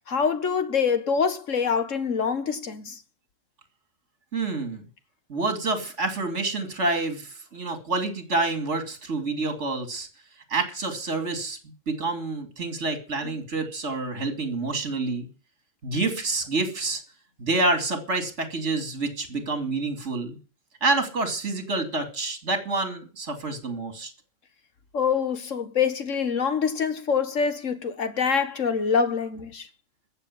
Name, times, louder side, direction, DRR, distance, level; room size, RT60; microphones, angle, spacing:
voice 1, 0.1-3.0 13.2-13.4 24.9-29.7, left 6 dB, 80° left, 2.0 m, -25 dB
voice 2, 4.3-4.8 5.3-10.1 10.5-11.6 11.9-15.3 15.8-17.0 17.4-20.4 20.8-24.1, right 3 dB, 65° right, 3.0 m, -28 dB
14.5 x 7.3 x 9.6 m
omnidirectional pair, 1.3 m